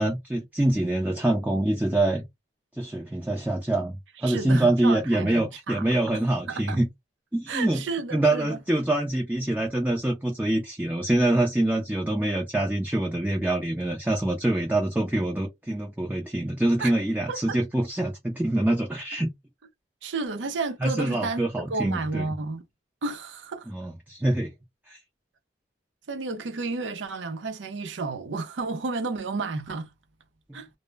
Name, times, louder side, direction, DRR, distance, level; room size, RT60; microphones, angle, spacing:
voice 1, 0.0-2.2 2.8-6.9 7.3-7.8 8.1-19.3 20.8-22.2 23.7-24.5 24.9-25.0 30.5-30.6, right 1 dB, 10° right, 0.4 m, -25 dB
voice 2, 4.2-5.8 6.1-6.8 7.5-8.6 16.8-16.9 17.3-17.6 20.0-22.6 23.0-23.7 26.1-29.9 30.5-30.7, right 3 dB, 90° right, 0.5 m, -32 dB
2.1 x 2.0 x 3.2 m
head